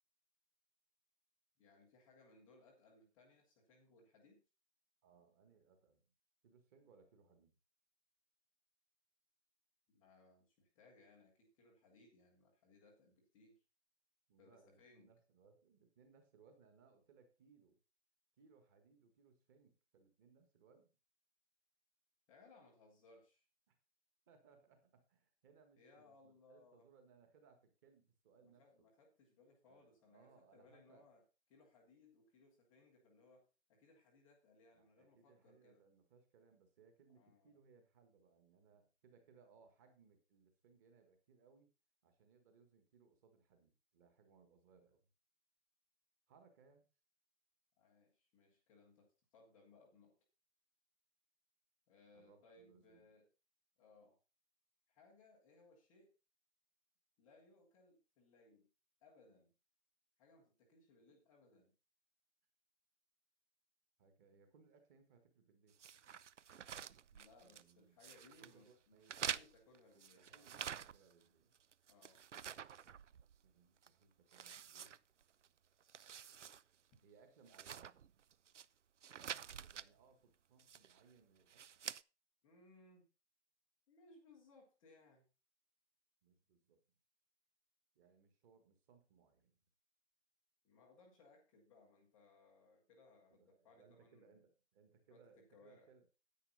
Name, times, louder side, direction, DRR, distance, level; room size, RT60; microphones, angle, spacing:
voice 1, 1.6-4.4 9.9-13.6 14.4-15.1 22.3-23.5 25.8-26.9 28.4-31.2 31.5-35.8 37.1-37.6 47.8-50.1 51.9-53.3 53.8-54.2 54.9-56.1 57.2-58.7 59.0-59.5 60.2-61.7 67.1-70.5 71.9-72.2 82.4-83.1 83.9-85.3 90.6-94.4 95.1-95.2 95.5-95.9, left 3 dB, 5° left, -7 dB, 0.6 m, -66 dB
voice 2, 5.0-6.0 6.4-7.6 14.3-17.8 18.4-20.9 23.7-23.8 24.3-28.9 29.7-31.1 34.7-41.7 42.0-45.0 46.3-46.9 52.1-53.1 64.0-65.7 67.4-68.0 68.4-69.4 69.9-71.5 73.4-75.0 77.0-78.0 79.7-81.6 86.2-86.8 87.9-89.5 93.3-96.0, right 5 dB, 15° right, 7 dB, 1.5 m, -68 dB
sound 1, 65.8-67.7 68.0-68.5 69.0-71.2 71.5-73.5 73.8-73.9 74.3-75.5 75.8-76.6 76.9-77.0 77.5-78.6 79.0-79.9 80.6-81.0 81.5-82.0, right 8 dB, 85° right, 0.6 m, -48 dB
10.0 x 9.1 x 3.9 m, 0.31 s
hypercardioid pair, 155°, 35 cm